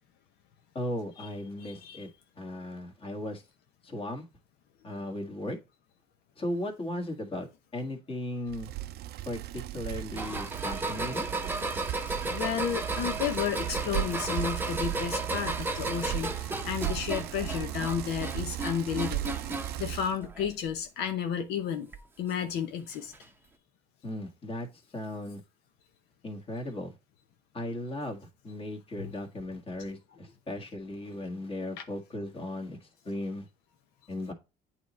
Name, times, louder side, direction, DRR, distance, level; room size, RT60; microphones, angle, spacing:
voice 1, 0.8-2.1 2.4-3.4 3.8-4.2 4.8-5.6 6.4-7.5 7.7-8.7 9.3-11.3 24.0-24.7 24.9-25.4 26.2-26.9 27.5-32.8 33.1-33.5 34.1-34.3, left 1 dB, 35° left, 1.8 m, -36 dB
voice 2, 1.6-2.0 12.3-21.9 22.2-23.1 29.0-29.1 31.8-31.9, left 8 dB, 85° left, 0.8 m, -32 dB
Bicycle, 8.5-20.2, right 14 dB, 70° right, 0.4 m, -36 dB
sound 1, 10.2-19.8 20.2-20.8 21.9-22.0 23.1-23.2, right 2 dB, 10° right, 0.7 m, -35 dB
8.6 x 3.1 x 4.1 m
cardioid pair, 110°, 17 cm